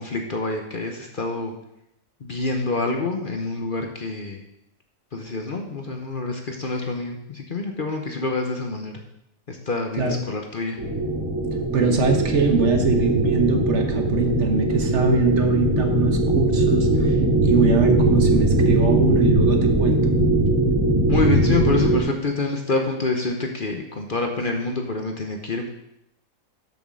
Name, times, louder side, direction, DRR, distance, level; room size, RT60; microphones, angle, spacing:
voice 1, 0.0-1.5 2.2-4.4 5.1-9.0 9.5-10.8 21.1-25.7, left 3 dB, 45° left, 3 dB, 0.9 m, -27 dB
sound 1, 10.8-22.0, right 2 dB, 75° right, 3.0 m, -20 dB
voice 2, 11.7-17.2 17.4-20.2, right 3 dB, 55° right, 4 dB, 1.3 m, -22 dB
7.1 x 6.1 x 6.2 m, 0.81 s
omnidirectional pair, 1.5 m